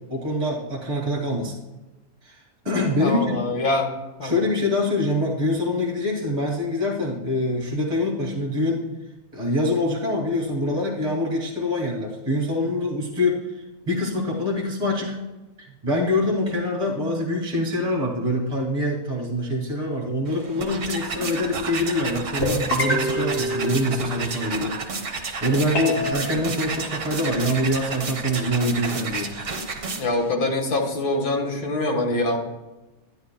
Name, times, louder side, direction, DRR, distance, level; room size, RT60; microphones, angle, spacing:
voice 1, 0.1-1.5 2.2-2.4 2.6-3.4 4.2-8.9 9.3-13.5 13.9-15.2 15.6-29.3, left 1 dB, 30° right, -2 dB, 2.0 m, -25 dB
voice 2, 3.0-3.9 4.2-4.4 29.9-32.4, left 2 dB, 85° left, 2 dB, 1.9 m, -24 dB
sound 1, 20.3-30.3, right 4 dB, 55° right, 1.5 m, -31 dB
sound 2, 22.4-24.5 25.7-26.1, equal, 55° left, 2.6 m, -26 dB
11.5 x 10.0 x 2.2 m, 1.1 s
omnidirectional pair, 1.6 m